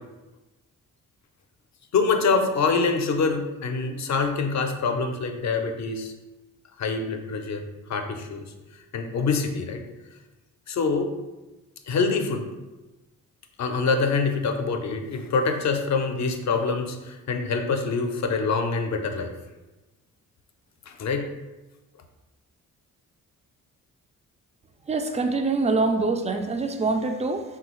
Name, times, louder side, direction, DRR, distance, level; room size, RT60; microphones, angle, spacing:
voice 1, 1.9-6.1 6.8-7.6 7.9-8.5 8.9-9.8 10.7-11.1 11.9-12.5 13.6-19.3 20.9-21.3, left 4 dB, 55° left, 5 dB, 0.5 m, -25 dB
voice 2, 24.9-27.4, right 3 dB, 20° right, 6 dB, 0.3 m, -24 dB
3.4 x 2.3 x 3.0 m, 1.1 s
cardioid pair, 65°, 34 cm